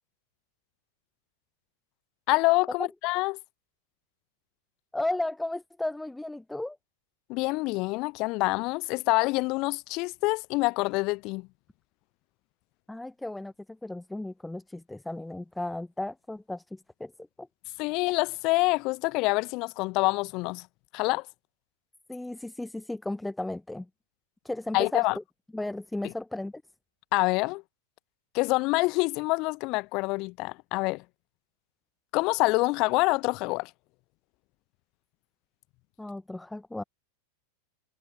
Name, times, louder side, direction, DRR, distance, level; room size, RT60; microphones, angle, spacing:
voice 1, 2.3-3.4 7.3-11.5 17.8-20.7 20.9-21.3 24.7-25.1 27.1-27.6 28.3-31.0 32.1-33.7, left 24 dB, 40° left, 0.8 m, -26 dB
voice 2, 4.9-6.8 12.9-17.5 22.1-23.9 24.4-25.2 25.5-26.6 36.0-36.8, left 2 dB, 5° left, 0.8 m, -35 dB
figure-of-eight pair, 90°, 0 cm